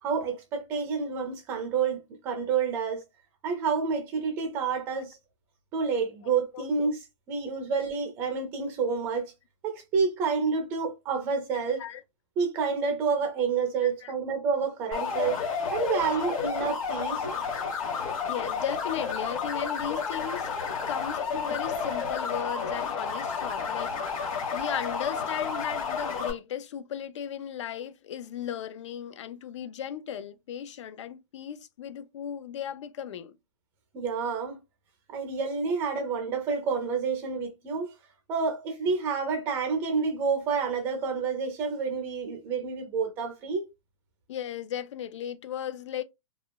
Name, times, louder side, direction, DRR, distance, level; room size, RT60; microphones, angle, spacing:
voice 1, 0.0-3.0 3.4-5.2 5.7-7.0 7.3-9.3 9.6-11.8 12.4-15.4 15.7-17.2 33.9-34.6 35.1-37.9 38.3-43.7, right 5 dB, 10° right, 0.4 m, -29 dB
voice 2, 13.8-14.1 16.9-17.0 18.3-20.5 20.9-33.4 44.3-46.0, left 9 dB, 60° left, 0.4 m, -36 dB
sound 1, 14.9-26.3, left 5 dB, 85° left, 1.2 m, -31 dB
3.0 x 2.3 x 2.2 m
hypercardioid pair, 175°, 17 cm